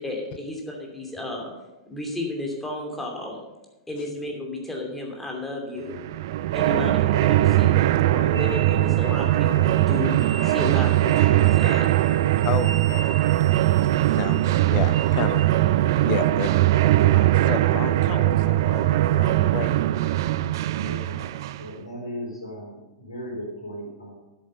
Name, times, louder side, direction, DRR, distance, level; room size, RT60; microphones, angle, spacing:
voice 1, 0.0-1.5 1.9-3.4 3.9-6.0 6.5-11.9, left 2 dB, 5° left, 0 dB, 2.7 m, -33 dB
sound 1, 5.9-21.7, right 14 dB, 55° right, 0.5 m, -21 dB
sound 2, 8.3-15.5, right 4 dB, 75° right, 3.6 m, -39 dB
voice 2, 12.4-12.8 13.2-13.3 13.8-15.4 16.0-19.8, left 11 dB, 40° left, 14 dB, 0.6 m, -33 dB
voice 3, 20.7-21.3 21.6-24.1, equal, 80° left, -6 dB, 3.5 m, -37 dB
10.5 x 8.8 x 5.6 m, 1.0 s
figure-of-eight pair, 100°, 3 cm